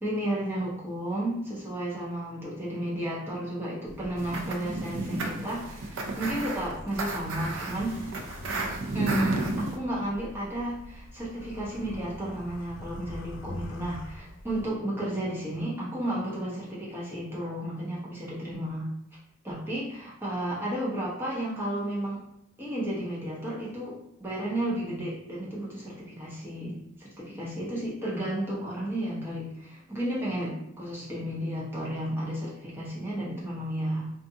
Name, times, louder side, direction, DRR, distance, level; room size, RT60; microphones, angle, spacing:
voice 1, 0.0-8.0 8.9-18.9 19.4-22.2 22.6-34.1, right 1 dB, 10° right, -7 dB, 0.8 m, -33 dB
sound 1, 3.9-14.7, left 1 dB, 75° left, 0.4 m, -44 dB
sound 2, 4.2-9.8, right 2 dB, 80° right, 0.4 m, -32 dB
2.5 x 2.4 x 2.7 m, 0.76 s
head